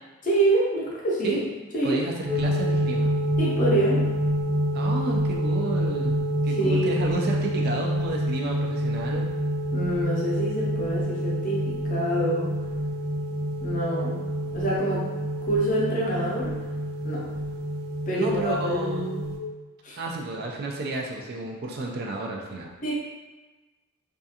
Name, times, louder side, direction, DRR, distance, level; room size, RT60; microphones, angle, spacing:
voice 1, 0.2-1.4 1.7-2.0 3.4-4.1 6.5-7.2 9.7-12.5 13.6-14.2 14.5-15.1 15.4-16.5 17.0-17.3 18.1-19.2 19.8-20.0 22.8-22.9, right 1 dB, 35° left, -5 dB, 0.6 m, -26 dB
voice 2, 1.8-3.1 4.7-9.3 18.1-19.2 20.0-22.7, right 2 dB, 45° right, -1 dB, 0.3 m, -31 dB
sound 1, 2.3-19.4, equal, 75° right, 0.8 m, -27 dB
2.4 x 2.3 x 2.7 m, 1.2 s
head